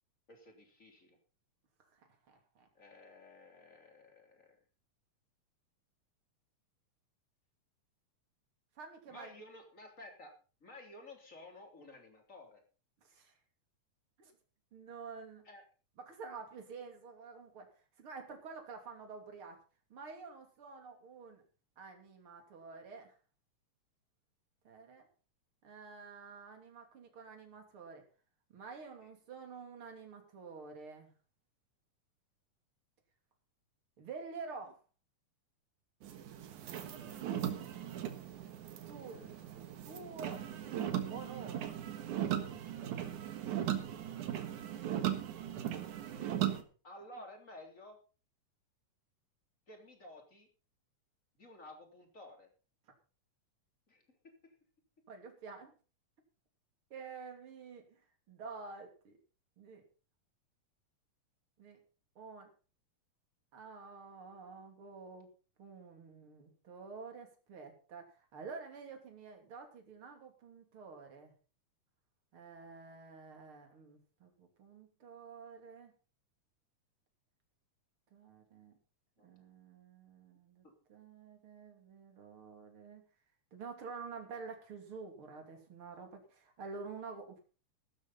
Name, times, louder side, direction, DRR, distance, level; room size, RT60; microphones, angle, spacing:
voice 1, 0.3-1.2 2.7-4.6 9.1-12.6 15.4-15.6 29.0-29.1 46.8-48.0 49.7-50.5 51.4-52.5 53.9-54.5 79.2-79.3 80.6-80.7, left 1 dB, 25° left, 3 dB, 3.6 m, -54 dB
voice 2, 1.9-2.7 8.8-9.3 13.0-13.3 14.2-14.3 14.7-15.5 16.1-17.7 18.0-19.6 19.9-21.4 21.8-23.2 24.6-25.0 25.6-28.0 28.5-31.1 34.0-34.8 38.9-39.3 39.9-40.5 41.1-41.8 43.1-44.0 55.1-55.7 56.9-58.0 58.3-59.2 59.6-59.8 61.6-61.8 62.2-62.5 63.5-65.3 65.6-71.3 72.3-75.9 78.1-78.7 79.2-80.6 80.9-83.0 83.5-87.4, right 4 dB, 45° right, 4 dB, 3.7 m, -49 dB
sound 1, 36.0-46.6, right 11 dB, 75° right, 2.9 m, -38 dB
16.0 x 12.5 x 4.2 m, 0.36 s
omnidirectional pair, 3.6 m